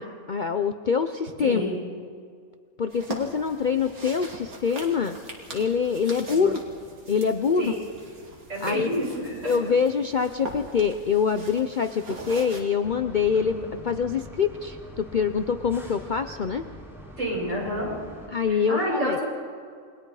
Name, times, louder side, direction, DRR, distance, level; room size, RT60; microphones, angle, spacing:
voice 1, 0.0-1.6 2.8-5.2 5.5-6.6 7.1-7.7 8.6-8.9 9.4-16.6 18.3-19.2, left 6 dB, 45° left, 8 dB, 0.6 m, -25 dB
voice 2, 1.4-1.8 6.3-6.5 7.6-7.8 8.5-9.6 13.3-13.7 17.2-17.9 18.5-19.2, equal, 60° right, -4 dB, 6.9 m, -29 dB
sound 1, 2.9-12.6, right 2 dB, 85° right, 2.9 m, -41 dB
sound 2, 12.8-18.3, equal, ahead, 3.6 m, -44 dB
28.5 x 21.0 x 4.9 m, 2.2 s
omnidirectional pair, 1.5 m